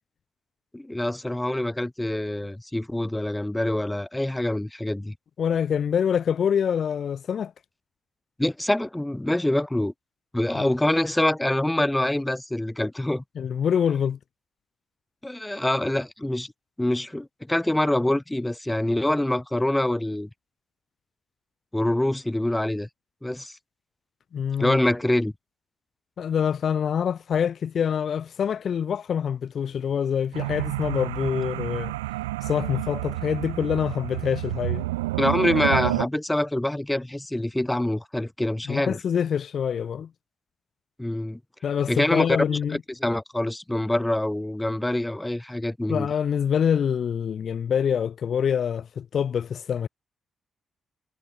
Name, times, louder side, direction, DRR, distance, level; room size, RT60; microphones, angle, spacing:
voice 1, 0.7-5.1 8.4-9.9 10.3-13.2 15.2-16.5 16.8-20.3 21.7-22.9 23.2-23.5 24.6-25.3 35.2-39.0 41.0-41.4 41.9-42.4 42.7-46.1, left 1 dB, 10° left, 1.3 m, -25 dB
voice 2, 5.4-7.5 10.5-10.7 13.4-14.2 24.3-24.8 26.2-31.9 32.4-34.9 38.7-40.1 41.6-42.8 45.9-49.9, left 8 dB, 60° left, 0.8 m, -25 dB
sound 1, 30.3-36.1, right 18 dB, 90° right, 0.4 m, -29 dB
hypercardioid pair, 40°, 0 cm